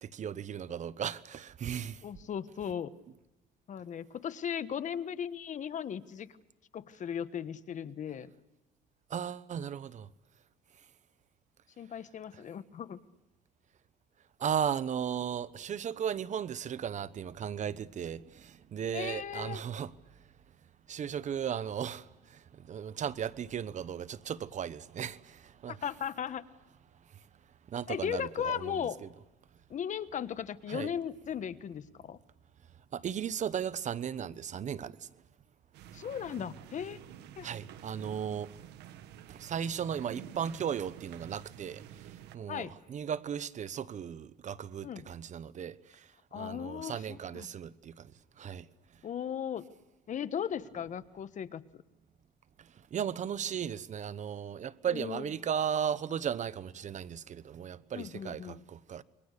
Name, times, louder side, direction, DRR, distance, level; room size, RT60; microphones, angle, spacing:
voice 1, 0.0-2.0 9.1-10.1 14.4-19.9 20.9-22.0 22.7-25.7 27.7-28.9 30.7-30.9 32.9-34.9 37.4-38.5 39.3-41.8 42.3-45.7 46.3-47.9 48.4-48.6 52.9-59.0, right 8 dB, 45° right, 1.0 m, -36 dB
voice 2, 2.0-2.9 3.7-6.3 6.7-8.3 11.8-13.0 18.9-19.6 25.7-26.4 27.9-29.0 29.7-32.2 35.9-37.0 37.4-37.5 42.5-42.7 44.8-45.1 46.3-47.5 49.0-49.6 50.1-51.8 54.9-55.3 57.9-58.6, left 8 dB, 45° left, 1.3 m, -37 dB
sound 1, 35.7-42.4, right 10 dB, 80° right, 1.5 m, -49 dB
28.5 x 23.5 x 6.7 m
cardioid pair, 110°, 17 cm